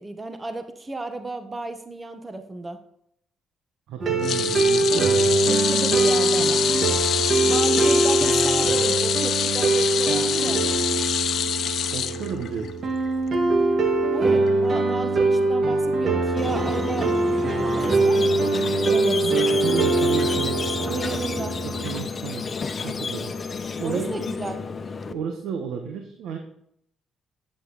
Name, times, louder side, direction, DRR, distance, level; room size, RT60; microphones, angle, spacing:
voice 1, 0.0-2.8 5.5-6.6 7.4-10.8 14.1-17.2 17.5-19.5 20.8-21.5 23.8-24.6, right 2 dB, 20° right, 7 dB, 1.1 m, -33 dB
voice 2, 3.9-5.5 11.9-12.9 19.2-22.4 22.8-23.3 23.8-24.2 25.1-26.4, right 6 dB, 85° right, 4 dB, 1.3 m, -33 dB
sound 1, 4.0-22.0, right 3 dB, 55° right, 1.8 m, -22 dB
sound 2, 4.2-12.7 13.1-13.3 14.5-14.6, left 9 dB, 70° left, 0.8 m, -25 dB
Squeak, 16.4-25.1, left 5 dB, 40° left, 0.9 m, -31 dB
11.0 x 8.3 x 4.0 m, 0.72 s
cardioid pair, 90°, 0 cm